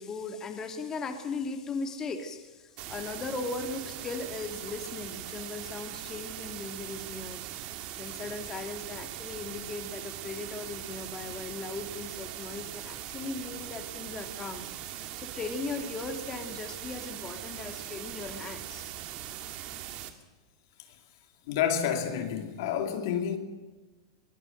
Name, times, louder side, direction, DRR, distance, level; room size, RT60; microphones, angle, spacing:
voice 1, 0.0-7.4 7.9-14.7 15.2-18.9 19.4-19.5, left 4 dB, 25° left, 2.6 m, -38 dB
sound 1, 2.8-20.1, right 12 dB, 50° right, 2.3 m, -41 dB
voice 2, 21.5-23.4, left 8 dB, 65° left, 2.5 m, -29 dB
23.0 x 16.0 x 7.8 m
hypercardioid pair, 115°, 2 cm